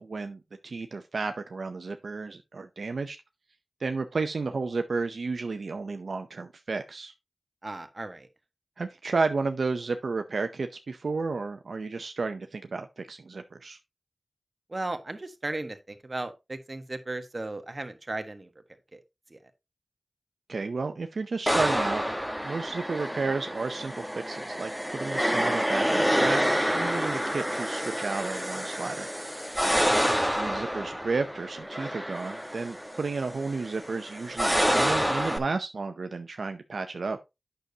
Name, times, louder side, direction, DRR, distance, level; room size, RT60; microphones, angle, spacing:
voice 1, 0.0-3.2 3.8-7.1 8.8-13.8 20.5-22.2 22.4-26.4 26.7-29.5 30.4-37.2, right 4 dB, 80° right, 0.6 m, -32 dB
voice 2, 7.6-8.3 14.7-18.5 18.9-19.0 19.3-19.4 29.6-30.1, right 2 dB, 40° right, 1.4 m, -36 dB
sound 1, 21.5-35.4, equal, ahead, 1.1 m, -28 dB
8.9 x 6.8 x 2.8 m
cardioid pair, 45°, 0 cm